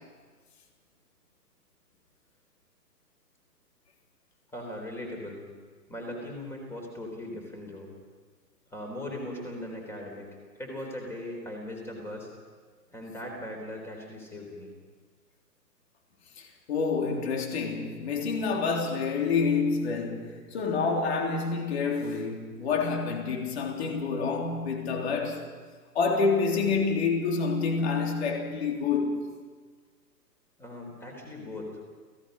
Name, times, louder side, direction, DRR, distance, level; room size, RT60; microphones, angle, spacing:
voice 1, 4.5-5.4 5.9-7.9 8.7-10.2 10.5-12.3 12.9-14.7 30.6-31.7, left 1 dB, 5° left, 3.6 m, -39 dB
voice 2, 16.4-25.5 25.9-29.2, left 4 dB, 40° left, 3.4 m, -28 dB
29.0 x 17.0 x 5.3 m
hypercardioid pair, 145°, 50 cm